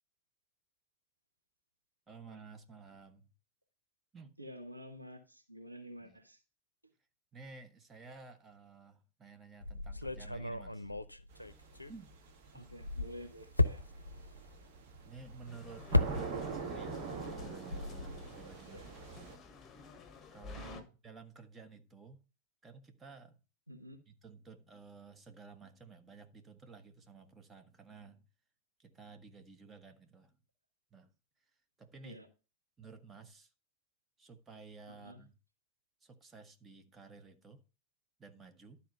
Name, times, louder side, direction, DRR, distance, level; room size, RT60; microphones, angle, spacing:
voice 1, 2.1-3.3 4.1-4.3 6.0-6.2 7.3-10.9 11.9-12.1 12.5-12.6 15.0-18.8 20.3-22.2 22.6-23.4 24.1-28.3 28.8-30.4 30.9-31.1 31.8-32.2 32.8-33.5 34.2-35.4 36.0-37.6 38.2-38.8, right 4 dB, 15° right, 1.2 m, -54 dB
voice 2, 4.4-6.4 12.5-13.8 18.7-18.9 20.6-20.9 23.7-24.0 32.0-32.3 34.9-35.2, equal, 85° right, 1.3 m, -49 dB
sound 1, 9.6-12.3 12.7-16.7 17.0-18.3, left 2 dB, 85° left, 0.5 m, -35 dB
sound 2, 11.3-19.4, right 5 dB, 45° right, 1.7 m, -44 dB
sound 3, 15.5-20.8, left 5 dB, 20° left, 1.4 m, -52 dB
12.0 x 4.3 x 5.4 m
figure-of-eight pair, 90°, 0 cm